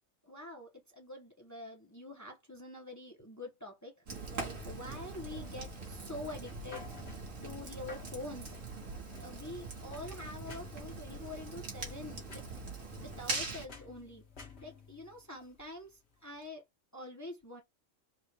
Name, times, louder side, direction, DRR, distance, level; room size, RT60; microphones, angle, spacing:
voice 1, 0.3-0.7 1.0-3.9 4.2-6.9 7.4-8.5 9.2-12.4 13.0-14.2 14.6-16.6 16.9-17.6, left 2 dB, 15° left, 0.9 m, -46 dB
Fire, 4.1-13.7, right 3 dB, 75° right, 1.9 m, -42 dB
sound 1, 4.3-16.5, left 4 dB, 55° left, 1.5 m, -55 dB
4.3 x 2.5 x 4.6 m
omnidirectional pair, 1.4 m